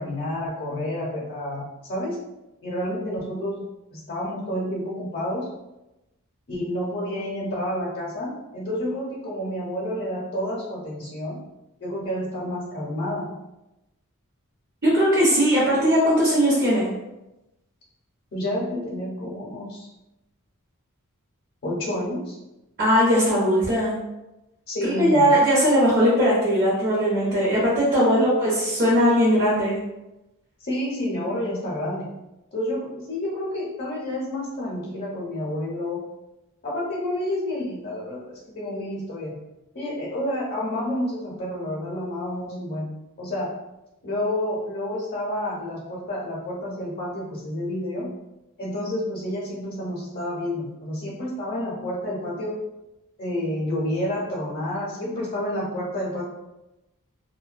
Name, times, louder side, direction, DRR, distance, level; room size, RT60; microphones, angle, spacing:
voice 1, 0.0-2.2 2.6-3.6 3.9-5.5 6.5-11.4 11.8-13.3 18.3-19.9 21.6-22.4 24.7-25.3 28.0-28.3 30.6-32.1 32.5-36.0 36.6-39.4 39.7-42.9 43.2-43.5 44.0-48.1 48.6-52.6 53.2-56.2, left 1 dB, 45° left, -5 dB, 0.6 m, -29 dB
voice 2, 14.8-16.9 22.8-24.0 24.8-29.8, equal, 45° right, -8 dB, 0.7 m, -19 dB
2.5 x 2.1 x 2.4 m, 0.96 s
head